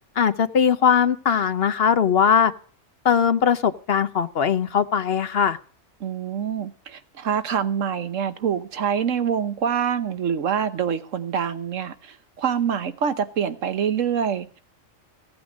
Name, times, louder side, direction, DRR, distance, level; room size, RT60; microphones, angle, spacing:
voice 1, 0.2-2.5 3.0-5.6, left 7 dB, 55° left, 12 dB, 0.9 m, -20 dB
voice 2, 6.0-14.6, right 8 dB, 80° right, 11 dB, 1.3 m, -25 dB
15.5 x 8.7 x 6.1 m, 0.43 s
omnidirectional pair, 1.3 m